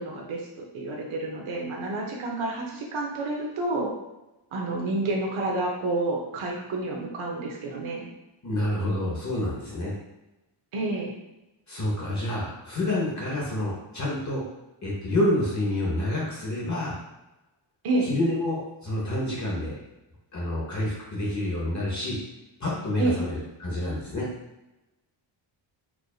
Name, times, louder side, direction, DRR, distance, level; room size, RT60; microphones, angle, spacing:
voice 1, 0.0-3.9 4.5-8.1 10.7-11.1 17.8-18.1 23.0-23.2, right 2 dB, 75° right, -1 dB, 0.8 m, -29 dB
voice 2, 8.4-9.9 11.7-14.5 14.8-16.9 18.0-19.8 20.3-22.2 22.6-24.3, left 1 dB, 35° left, -5 dB, 0.9 m, -28 dB
4.6 x 2.5 x 2.3 m, 0.98 s
wide cardioid pair, 120°, 49 cm